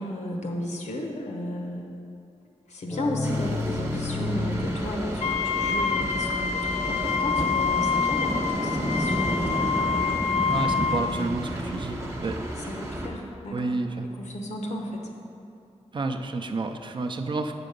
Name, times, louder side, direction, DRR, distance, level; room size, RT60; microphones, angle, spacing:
voice 1, 0.0-1.8 2.7-9.7 10.7-11.8 12.6-13.7 14.2-15.1, left 1 dB, 90° left, 1 dB, 1.0 m, -34 dB
sound 1, 2.9-6.5, left 2 dB, 25° left, 0.6 m, -32 dB
sound 2, 3.2-13.1, right 1 dB, 25° right, 1.0 m, -31 dB
Wind instrument woodwind instrument, 5.2-11.1, left 6 dB, 65° left, 0.4 m, -27 dB
voice 2, 10.4-12.4 13.5-14.1 15.9-17.5, right 3 dB, 45° right, 5 dB, 0.5 m, -30 dB
7.7 x 6.1 x 5.2 m, 2.6 s
wide cardioid pair, 135°, 12 cm